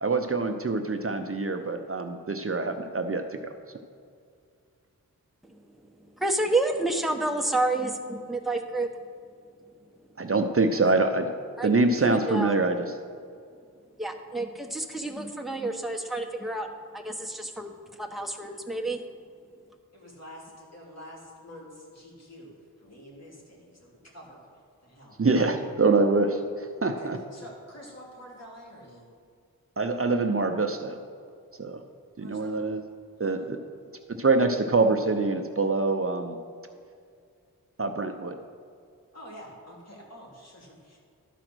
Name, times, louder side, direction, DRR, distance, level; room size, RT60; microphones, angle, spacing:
voice 1, 0.0-3.5 10.2-11.3 11.6-12.9 25.2-27.2 29.8-31.0 31.6-31.8 32.2-32.8 33.2-33.6 34.2-36.4 37.8-38.4, right 3 dB, 40° right, 6 dB, 0.7 m, -25 dB
voice 2, 6.2-8.9 11.6-11.7 12.0-12.5 14.0-16.7 16.9-17.7 18.0-19.0, right 2 dB, ahead, 3 dB, 1.0 m, -29 dB
voice 3, 19.9-22.5 22.8-24.4 24.8-25.2 26.8-29.1 32.2-32.6 33.2-33.5 39.1-41.0, equal, 45° left, -4 dB, 2.8 m, -47 dB
12.0 x 4.9 x 6.2 m, 2.3 s
cardioid pair, 45°, 35 cm